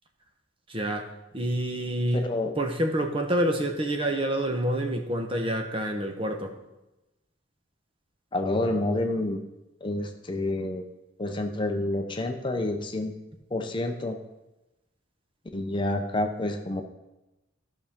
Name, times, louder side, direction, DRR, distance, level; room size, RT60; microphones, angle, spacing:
voice 1, 0.7-1.1 1.3-2.3 2.6-6.5, right 1 dB, 25° right, 4 dB, 1.0 m, -27 dB
voice 2, 2.1-2.5 8.3-9.4 9.8-10.8 11.2-13.1 13.5-14.2 15.5-16.8, left 2 dB, 25° left, 4 dB, 0.7 m, -28 dB
14.5 x 5.8 x 3.6 m, 0.99 s
head